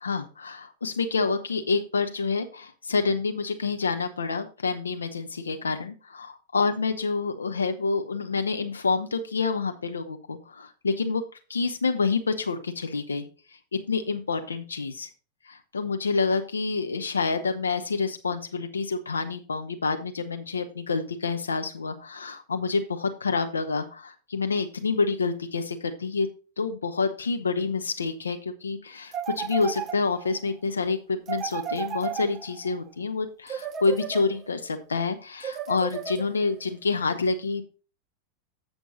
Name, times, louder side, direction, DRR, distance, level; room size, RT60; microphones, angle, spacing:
voice 1, 0.0-11.2 11.5-13.2 13.9-15.1 15.7-26.3 26.6-37.6, left 4 dB, 75° left, 8 dB, 0.7 m, -28 dB
sound 1, 29.1-30.4 31.3-32.8 33.5-34.7 35.4-36.6, right 8 dB, 25° right, 0.5 m, -34 dB
8.0 x 6.2 x 4.0 m, 0.34 s
figure-of-eight pair, 90°, 0 cm